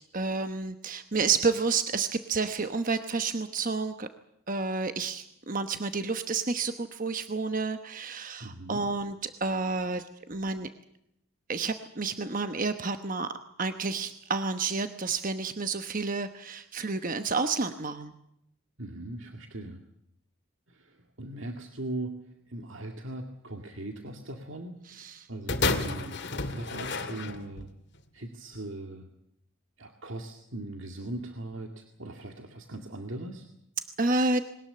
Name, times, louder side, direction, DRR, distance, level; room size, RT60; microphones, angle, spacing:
voice 1, 0.1-4.1 4.5-10.7 11.5-13.3 13.6-18.1 24.9-25.3 34.0-34.4, right 4 dB, 40° right, 8 dB, 1.0 m, -30 dB
voice 2, 8.4-8.9 18.8-19.8 20.7-22.1 22.5-26.2 26.5-27.7 28.1-29.1 29.8-33.5, right 1 dB, 60° right, 4 dB, 2.1 m, -39 dB
sound 1, 25.5-27.7 28.5-28.6, left 3 dB, 50° left, 2.3 m, -31 dB
21.5 x 19.5 x 8.6 m, 0.77 s
head